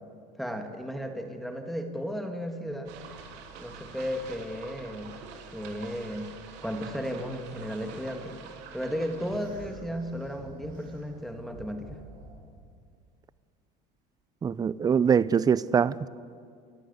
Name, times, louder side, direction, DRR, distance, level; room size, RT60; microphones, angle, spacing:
voice 1, 0.4-2.9 3.6-5.1 5.5-6.3 6.6-8.3 8.7-12.0, equal, ahead, 4 dB, 1.9 m, -34 dB
sound 1, 2.9-9.4, right 6 dB, 65° right, 3.0 m, -46 dB
sound 2, 9.3-12.7, right 3 dB, 45° right, 4.8 m, -49 dB
voice 2, 14.4-16.1, right 7 dB, 20° right, 19 dB, 0.5 m, -23 dB
29.5 x 11.5 x 8.1 m, 2.2 s
supercardioid pair, 125°, 19 cm